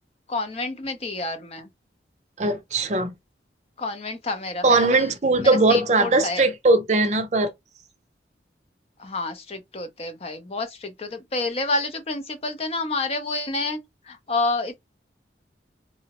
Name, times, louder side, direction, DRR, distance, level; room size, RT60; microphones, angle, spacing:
voice 1, 0.3-1.7 3.8-5.1 5.4-6.4 9.0-13.8 14.1-14.8, left 2 dB, 35° left, 0.5 m, -29 dB
voice 2, 2.4-3.1 4.6-7.5, right 2 dB, 40° right, 0.5 m, -20 dB
3.6 x 2.0 x 2.8 m
head